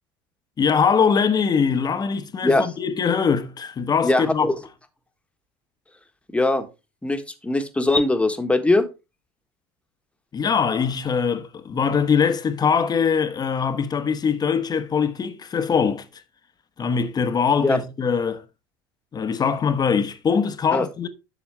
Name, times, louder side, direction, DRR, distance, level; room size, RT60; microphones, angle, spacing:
voice 1, 0.6-4.5 10.3-16.1 16.8-18.4 19.1-21.1, left 6 dB, 30° left, 1.0 m, -22 dB
voice 2, 4.0-4.6 6.3-6.7 7.0-8.8 17.6-17.8 20.7-20.9, left 2 dB, 10° left, 1.4 m, -21 dB
7.2 x 6.9 x 3.4 m
hypercardioid pair, 85°, 13 cm